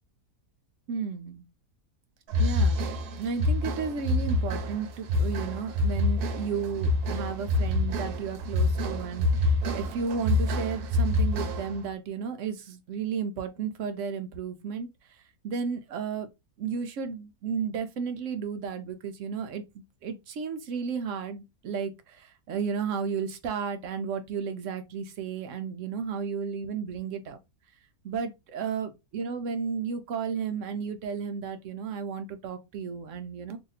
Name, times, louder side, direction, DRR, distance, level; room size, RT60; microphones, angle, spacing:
voice 1, 0.9-1.4 2.4-2.9 3.2-14.9 15.4-16.3 16.6-19.6 20.0-27.4 28.0-33.6, right 6 dB, 65° right, 0.8 m, -33 dB
sound 1, 2.3-11.9, left 1 dB, 90° right, 1.2 m, -27 dB
2.8 x 2.6 x 3.9 m
omnidirectional pair, 1.6 m